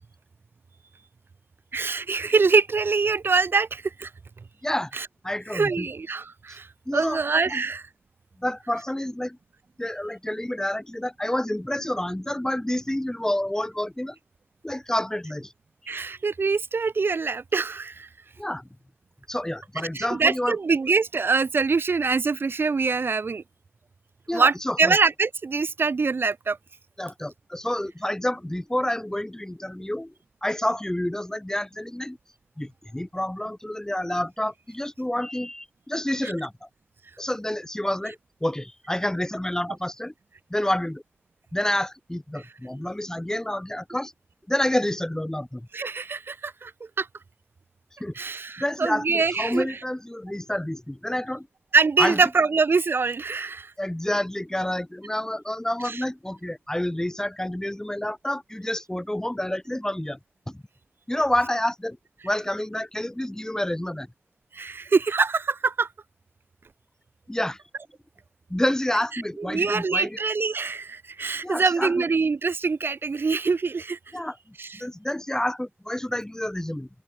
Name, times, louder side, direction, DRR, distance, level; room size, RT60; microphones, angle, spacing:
voice 1, 1.7-4.1 4.9-5.1 5.5-6.7 6.9-7.9 15.9-18.1 19.9-23.4 24.3-26.6 36.2-36.3 45.7-46.7 47.0-47.1 48.2-49.7 51.7-53.7 55.8-56.0 64.5-65.9 69.4-74.0 74.6-74.8, right 4 dB, 70° right, 0.5 m, -24 dB
voice 2, 4.6-4.9 5.2-5.9 6.9-7.6 8.4-9.4 9.8-14.2 14.6-15.5 15.8-16.0 18.4-18.7 19.3-20.6 24.3-25.0 27.0-30.1 30.4-32.2 32.6-36.7 37.2-40.1 40.5-41.0 41.5-44.1 44.5-45.7 48.0-48.1 48.6-51.5 52.0-52.2 53.8-60.2 60.5-60.6 61.1-62.0 62.2-64.1 67.3-67.6 68.5-70.2 71.4-72.0 74.1-74.4 74.8-76.9, left 1 dB, 15° left, 1.3 m, -28 dB
open air
cardioid pair, 45°, 4 cm